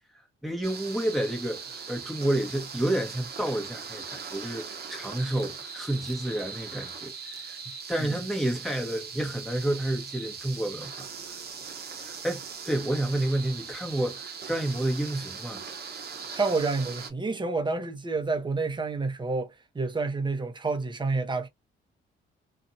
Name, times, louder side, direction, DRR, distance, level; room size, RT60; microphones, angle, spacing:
voice 1, 0.4-7.6 7.9-11.1 12.0-15.6, right 1 dB, ahead, 1.1 m, -30 dB
sound 1, 0.6-17.1, right 6 dB, 50° right, 0.9 m, -40 dB
voice 2, 16.3-21.5, right 3 dB, 25° right, 0.8 m, -29 dB
2.6 x 2.4 x 2.7 m
cardioid pair, 90°, 20 cm